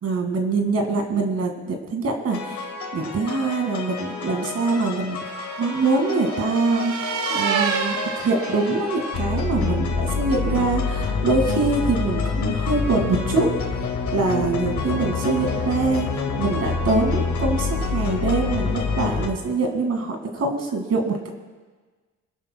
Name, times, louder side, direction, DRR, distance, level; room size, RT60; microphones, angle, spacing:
voice 1, 0.0-13.5 14.1-21.3, right 3 dB, 55° right, 3 dB, 2.1 m, -24 dB
sound 1, 2.3-19.3, left 4 dB, 75° left, 1.9 m, -27 dB
sound 2, 4.0-9.4, right 5 dB, 80° right, 1.4 m, -30 dB
26.0 x 11.0 x 2.3 m, 1.4 s
cardioid pair, 90°, 30 cm